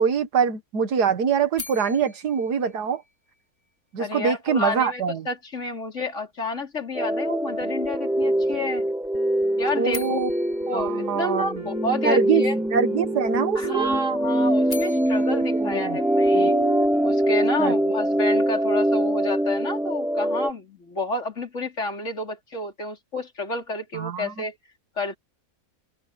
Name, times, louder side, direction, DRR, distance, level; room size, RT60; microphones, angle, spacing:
voice 1, 0.0-3.0 3.9-5.3 9.8-10.3 10.7-11.6 12.0-13.9 15.3-16.0 16.3-16.5 17.6-17.8 23.9-24.3, right 6 dB, 80° right, 2.1 m, -24 dB
sound 1, 1.6-3.7 9.9-12.0 14.4-16.8, left 3 dB, 20° left, 4.3 m, -43 dB
voice 2, 4.0-8.8 9.6-10.2 10.7-12.6 13.5-16.6 17.0-24.5 25.0-25.2, left 2 dB, 45° left, 4.5 m, -30 dB
sound 2, 6.9-20.5, right 1 dB, ahead, 0.7 m, -23 dB
sound 3, 7.5-17.3, right 6 dB, 55° right, 7.4 m, -38 dB
open air
omnidirectional pair, 1.7 m